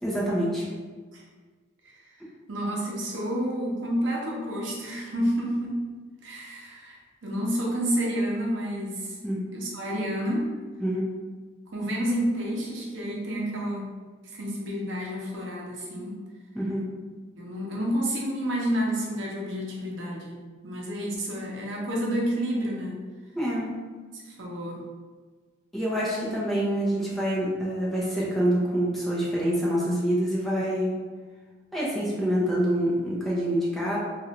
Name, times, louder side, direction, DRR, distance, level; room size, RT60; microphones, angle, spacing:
voice 1, 0.0-0.6 9.2-9.4 10.8-11.0 16.5-16.8 23.3-23.7 25.7-30.9 31.7-34.0, equal, ahead, -7 dB, 0.6 m, -26 dB
voice 2, 2.5-5.9 6.2-9.2 9.5-10.5 11.7-13.9 14.3-16.2 17.4-23.0 24.1-24.9, equal, 80° right, -3 dB, 0.7 m, -30 dB
3.1 x 2.5 x 2.9 m, 1.4 s
head